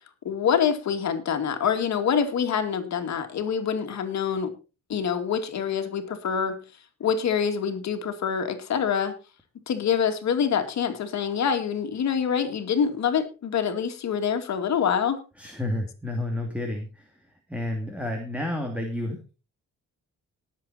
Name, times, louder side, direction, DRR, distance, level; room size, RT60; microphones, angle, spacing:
voice 1, 0.2-4.5 4.9-6.6 7.0-9.1 9.7-15.2, left 7 dB, 60° left, 6 dB, 2.4 m, -26 dB
voice 2, 15.4-17.1 17.5-19.3, left 1 dB, 5° right, 3 dB, 2.6 m, -30 dB
19.0 x 7.6 x 4.3 m, 0.33 s
cardioid pair, 135°, 32 cm